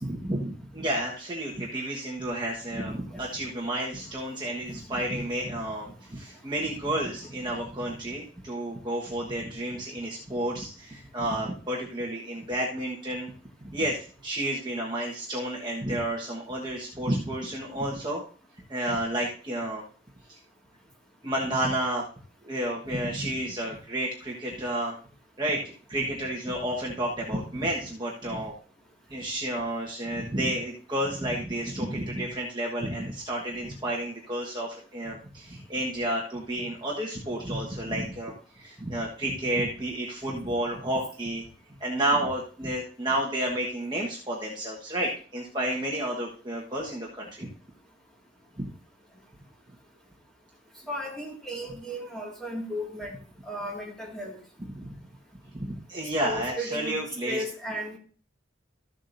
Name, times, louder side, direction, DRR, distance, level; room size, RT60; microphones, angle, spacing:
voice 1, 0.0-13.3 13.6-18.2 18.7-19.8 20.3-20.4 21.2-22.0 22.4-24.9 25.4-28.5 29.1-41.4 41.8-47.5 48.6-48.7 54.7-54.9 55.5-57.4, right 1 dB, 25° right, -3 dB, 1.3 m, -31 dB
voice 2, 50.9-53.2 53.4-54.4 56.2-58.0, equal, 5° left, -2 dB, 2.0 m, -35 dB
14.0 x 7.4 x 2.6 m, 0.39 s
head